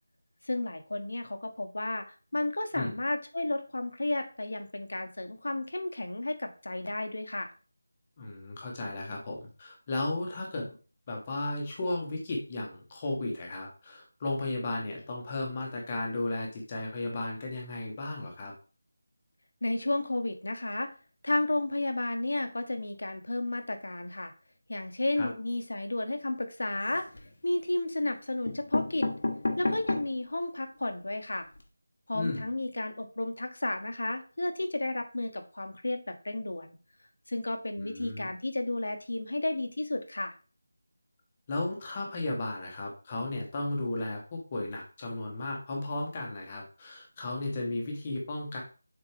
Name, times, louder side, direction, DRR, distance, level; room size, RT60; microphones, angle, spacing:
voice 1, 0.4-7.5 19.6-20.9 21.2-24.3 24.7-27.1 27.4-29.1 29.6-31.5 32.1-36.7 37.3-40.3, left 2 dB, 65° left, 6 dB, 1.2 m, -32 dB
voice 2, 8.2-10.8 11.1-18.5 25.2-25.3 32.1-32.4 37.8-38.3 41.5-48.6, left 2 dB, 15° left, 0 dB, 1.1 m, -34 dB
sound 1, 26.7-27.3 28.1-28.2 28.5-30.3 30.8-30.9 31.0-31.1 31.4-31.6, left 2 dB, 45° left, 1.0 m, -32 dB
7.2 x 4.3 x 3.4 m, 0.36 s
figure-of-eight pair, 180°, 0 cm